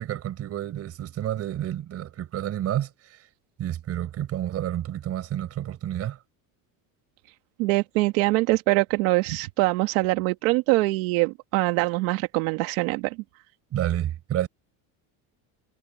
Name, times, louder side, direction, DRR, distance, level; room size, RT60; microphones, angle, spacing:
voice 1, 0.0-2.9 3.6-6.2 13.7-14.5, right 11 dB, 35° right, 5.0 m, -29 dB
voice 2, 7.6-13.2, right 22 dB, 80° right, 1.7 m, -23 dB
cardioid pair, 165°, 40 cm